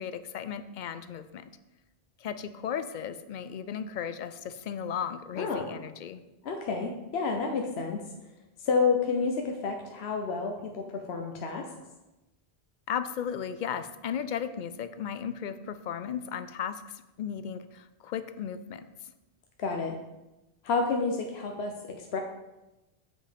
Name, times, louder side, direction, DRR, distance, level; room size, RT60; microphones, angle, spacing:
voice 1, 0.0-1.5 2.2-6.2 12.9-18.9, left 8 dB, 60° left, 12 dB, 0.5 m, -35 dB
voice 2, 5.4-5.7 6.4-8.0 8.6-10.8 11.1-11.6 19.6-20.0 20.6-21.7 22.0-22.2, left 4 dB, 75° left, 3 dB, 1.0 m, -29 dB
7.3 x 5.5 x 5.1 m, 1.0 s
omnidirectional pair, 1.1 m